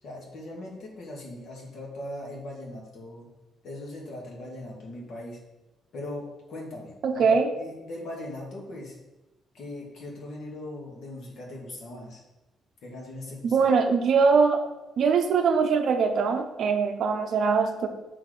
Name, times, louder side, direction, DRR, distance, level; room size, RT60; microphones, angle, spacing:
voice 1, 0.0-3.3 3.6-5.4 5.9-9.0 9.5-12.2 12.8-13.7, left 1 dB, 55° left, -1 dB, 1.9 m, -39 dB
voice 2, 7.0-7.4 13.5-14.6 15.0-17.9, right 5 dB, 50° right, 6 dB, 0.6 m, -22 dB
6.0 x 4.3 x 4.9 m, 1.0 s
cardioid pair, 165°, 0 cm